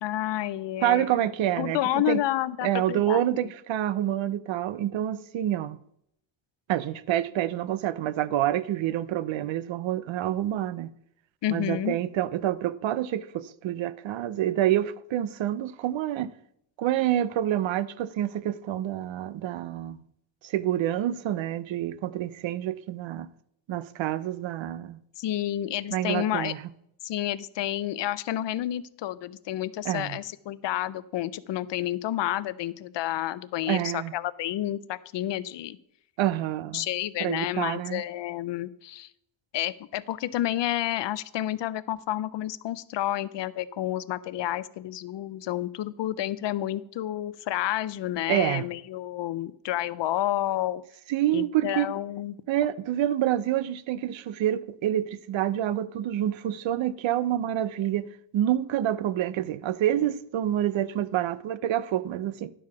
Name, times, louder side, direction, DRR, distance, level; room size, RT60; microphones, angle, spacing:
voice 1, 0.0-1.1 1.6-3.2 11.4-12.0 25.2-26.5 27.0-35.8 36.7-39.1 39.5-50.8 51.3-52.4, left 13 dB, 70° left, 0.5 m, -30 dB
voice 2, 0.8-2.2 2.6-5.8 6.7-10.9 11.5-16.3 16.8-20.0 20.4-23.3 23.7-25.0 25.9-26.6 29.8-30.2 33.7-34.1 36.2-36.9 37.2-38.0 48.3-48.6 51.1-51.9 52.5-58.1 58.3-62.5, right 12 dB, 85° right, 0.6 m, -27 dB
11.0 x 4.8 x 5.7 m
wide cardioid pair, 140°, 45 cm